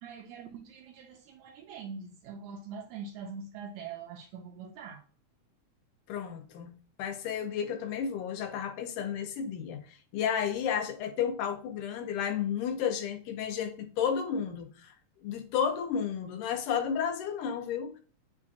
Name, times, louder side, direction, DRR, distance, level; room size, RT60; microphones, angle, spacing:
voice 1, 0.0-5.0, right 5 dB, 80° right, 1.7 m, -43 dB
voice 2, 6.1-6.7 7.0-14.9 15.2-18.0, left 8 dB, 85° left, 2.2 m, -32 dB
7.1 x 2.4 x 2.7 m
omnidirectional pair, 3.6 m